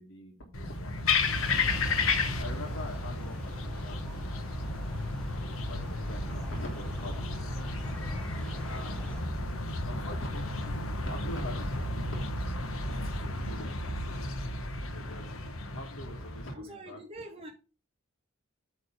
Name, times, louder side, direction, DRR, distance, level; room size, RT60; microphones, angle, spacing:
voice 1, 0.0-1.6 2.4-4.4 5.4-7.4 8.6-9.2 9.8-12.5 12.9-14.3 14.9-15.4 15.7-17.0, left 1 dB, 70° left, 1.5 m, -44 dB
sound 1, 0.5-16.5, left 3 dB, 85° left, 1.1 m, -33 dB
sound 2, 1.6-9.2, equal, 5° left, 1.0 m, -49 dB
voice 2, 16.5-17.5, right 1 dB, 30° right, 1.0 m, -44 dB
8.5 x 3.3 x 5.3 m
head